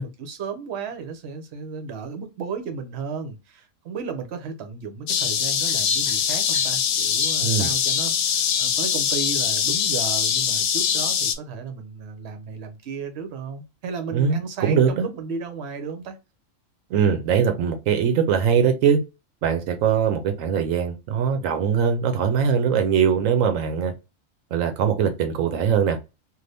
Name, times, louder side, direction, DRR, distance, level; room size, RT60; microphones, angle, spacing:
voice 1, 0.0-16.2, right 5 dB, 60° right, 0.9 m, -34 dB
sound 1, 5.1-11.4, left 7 dB, 90° left, 1.0 m, -23 dB
voice 2, 14.1-15.1 16.9-19.0 19.4-23.9 24.5-26.0, right 7 dB, 85° right, 1.0 m, -21 dB
2.6 x 2.5 x 3.3 m
omnidirectional pair, 1.4 m